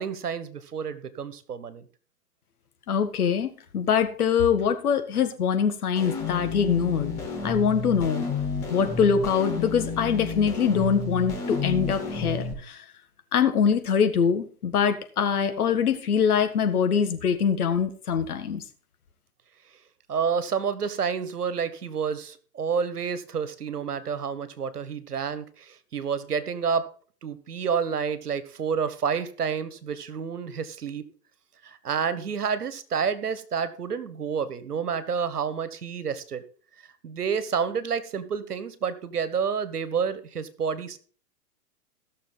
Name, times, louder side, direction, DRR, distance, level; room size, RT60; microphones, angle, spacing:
voice 1, 0.0-1.8 20.1-26.8 27.2-31.0 31.6-36.4 37.0-41.0, right 6 dB, 85° right, 14 dB, 1.4 m, -29 dB
voice 2, 2.9-7.1 7.4-8.3 8.7-12.9 13.3-18.6, left 7 dB, 75° left, 8 dB, 1.8 m, -24 dB
sound 1, 6.0-12.5, left 4 dB, 35° left, 4.3 m, -31 dB
16.5 x 6.6 x 4.0 m, 0.43 s
hypercardioid pair, 115°, 45 cm